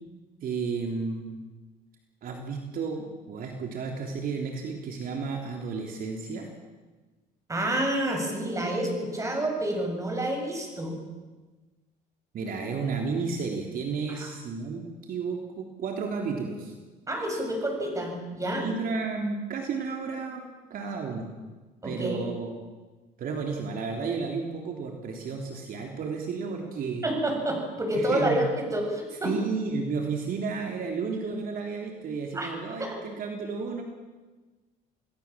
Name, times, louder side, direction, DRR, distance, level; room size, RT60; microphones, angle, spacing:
voice 1, 0.4-1.3 2.2-6.5 12.3-16.7 18.5-20.4 20.7-21.3 21.8-22.5 23.2-27.1 28.0-28.4 29.2-33.8, right 4 dB, 60° right, 2 dB, 3.5 m, -32 dB
voice 2, 7.5-11.0 14.1-14.3 17.1-18.7 21.8-22.3 27.0-29.3 32.3-32.5 32.8-33.0, right 1 dB, 20° right, 2 dB, 7.8 m, -28 dB
28.5 x 19.0 x 7.5 m, 1.3 s
cardioid pair, 110°, 17 cm